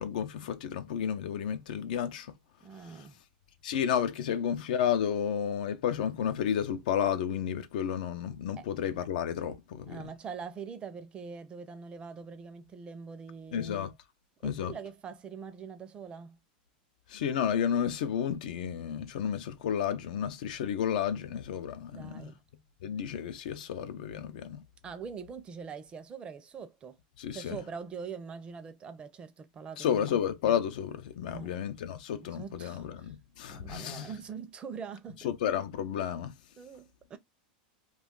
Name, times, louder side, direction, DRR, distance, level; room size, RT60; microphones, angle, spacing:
voice 1, 0.0-2.3 3.6-10.0 13.5-13.9 14.4-14.7 17.1-22.3 22.8-24.6 27.2-27.6 29.8-34.1 35.2-36.3, left 8 dB, 75° left, 0.5 m, -31 dB
voice 2, 2.6-3.2 8.6-8.7 9.9-13.8 14.4-16.4 21.9-22.4 24.8-27.0 27.3-30.0 31.3-31.6 32.1-33.2 33.5-35.3 36.6-37.2, right 6 dB, 25° right, 0.5 m, -43 dB
2.4 x 2.4 x 3.6 m
supercardioid pair, 130°, 5 cm